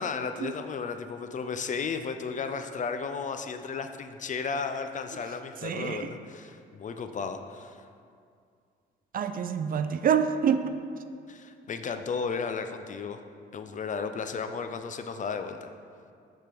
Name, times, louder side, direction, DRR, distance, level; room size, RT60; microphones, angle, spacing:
voice 1, 0.0-7.9 11.3-13.2 13.5-15.7, left 5 dB, 40° left, 8 dB, 0.4 m, -34 dB
voice 2, 5.6-6.1 9.1-10.7, right 7 dB, 45° right, 9 dB, 0.4 m, -26 dB
8.1 x 3.6 x 4.5 m, 2.3 s
cardioid pair, 90°, 20 cm